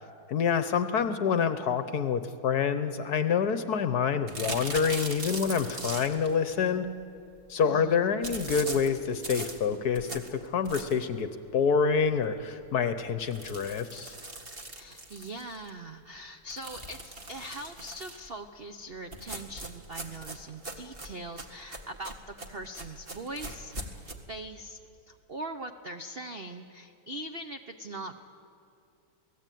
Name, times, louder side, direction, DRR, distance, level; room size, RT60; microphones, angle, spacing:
voice 1, 0.3-6.9 7.5-14.2, left 6 dB, 60° left, 11 dB, 1.2 m, -27 dB
sound 1, 4.3-6.3 8.2-11.1 11.6-11.7 12.0-12.1 12.4-12.5 13.2-15.7 16.5-18.3 19.1-24.1, right 2 dB, 25° right, 1.9 m, -40 dB
voice 2, 7.6-8.1 14.6-24.0 24.3-24.8 25.1-28.2, right 2 dB, 70° right, 7 dB, 0.5 m, -41 dB
28.5 x 18.5 x 9.2 m, 2.6 s
omnidirectional pair, 2.4 m